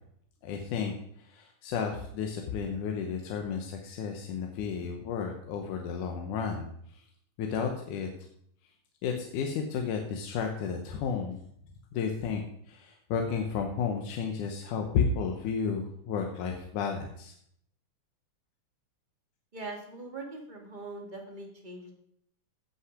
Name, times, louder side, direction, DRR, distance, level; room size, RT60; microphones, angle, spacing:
voice 1, 0.4-7.0 7.4-8.1 9.0-11.4 11.9-17.3, left 6 dB, 90° left, 3 dB, 2.5 m, -32 dB
voice 2, 19.5-21.9, right 2 dB, 20° right, 1 dB, 1.2 m, -41 dB
16.0 x 5.8 x 4.9 m, 0.68 s
omnidirectional pair, 3.5 m